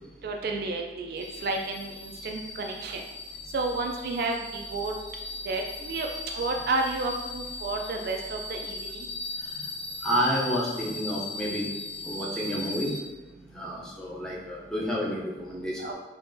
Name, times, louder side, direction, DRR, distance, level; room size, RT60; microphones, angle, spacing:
voice 1, 0.2-3.0 3.5-4.9 5.4-6.1 6.3-9.1 15.8-15.9, right 3 dB, 55° right, 2 dB, 0.3 m, -31 dB
sound 1, 1.2-13.0, left 3 dB, 85° left, 0.6 m, -38 dB
voice 2, 10.0-11.7 12.0-12.9 13.3-15.9, equal, 5° left, -5 dB, 0.6 m, -30 dB
3.6 x 3.1 x 2.6 m, 1.1 s
head